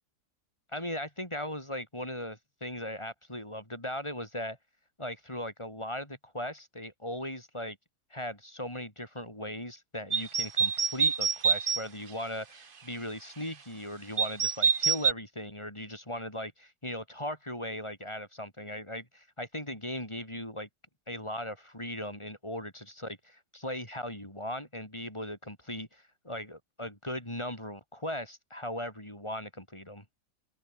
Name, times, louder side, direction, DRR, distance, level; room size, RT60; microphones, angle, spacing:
voice 1, 0.7-4.6 5.0-7.8 8.1-20.7 21.1-30.0, left 1 dB, 15° left, 6.1 m, -38 dB
sound 1, 10.1-11.8 14.2-15.1, right 6 dB, 40° right, 1.0 m, -26 dB
open air
omnidirectional pair, 1.8 m